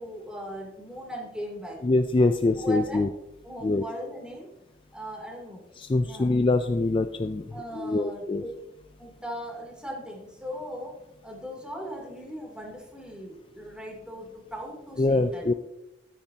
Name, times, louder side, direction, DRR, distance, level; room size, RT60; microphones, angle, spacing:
voice 1, 0.0-1.8 2.1-3.0 3.4-4.5 4.9-5.6 6.0-6.3 7.5-8.5 9.0-10.9 11.2-15.5, equal, 5° right, -2 dB, 2.9 m, -38 dB
voice 2, 1.8-3.1 3.6-3.8 5.8-7.5 7.7-8.4 15.0-15.5, left 2 dB, 30° left, 9 dB, 0.4 m, -24 dB
12.5 x 9.9 x 2.8 m, 0.91 s
head